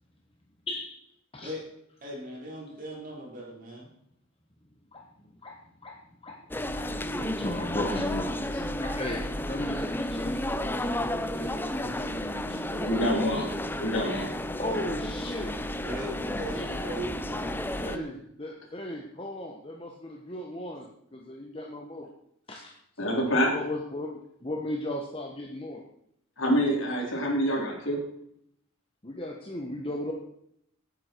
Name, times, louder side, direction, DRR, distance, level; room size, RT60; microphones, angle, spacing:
voice 1, 0.7-1.0 1.3-1.5 4.9-6.4 6.7-6.9 7.2-13.2 14.6-15.6 16.5-16.8 17.8-22.1 22.5-25.8 29.0-30.1, left 1 dB, 25° left, 1 dB, 1.2 m, -36 dB
voice 2, 2.0-3.9 15.8-18.2, right 1 dB, 40° right, -3 dB, 4.7 m, -39 dB
sound 1, 6.5-18.0, left 1 dB, 10° left, 0.5 m, -32 dB
voice 3, 12.9-13.5 13.7-14.3 23.0-23.5 26.4-28.0, equal, 65° left, -1 dB, 3.8 m, -26 dB
17.5 x 9.3 x 4.6 m, 0.73 s
head